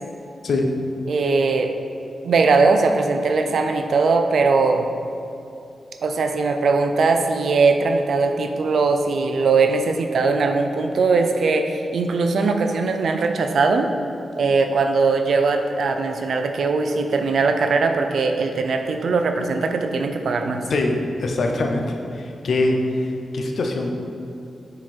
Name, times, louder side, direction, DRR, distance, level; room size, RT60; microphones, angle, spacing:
voice 1, 1.1-1.7 2.2-4.9 6.0-13.9 14.4-20.6, right 4 dB, 65° right, 5 dB, 0.5 m, -20 dB
voice 2, 20.7-23.9, left 2 dB, 60° left, 2 dB, 0.7 m, -23 dB
7.5 x 3.9 x 4.3 m, 2.7 s
wide cardioid pair, 160°, 0 cm